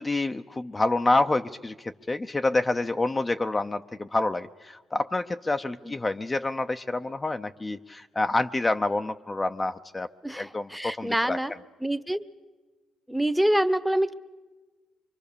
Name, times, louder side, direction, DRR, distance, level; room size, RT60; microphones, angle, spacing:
voice 1, 0.0-10.1 10.4-11.4, left 2 dB, 20° left, 7 dB, 0.7 m, -27 dB
voice 2, 10.2-11.5 11.8-12.3 13.1-14.1, right 1 dB, 5° right, 14 dB, 1.0 m, -26 dB
25.0 x 24.5 x 6.9 m, 1.3 s
cardioid pair, 90°, 0 cm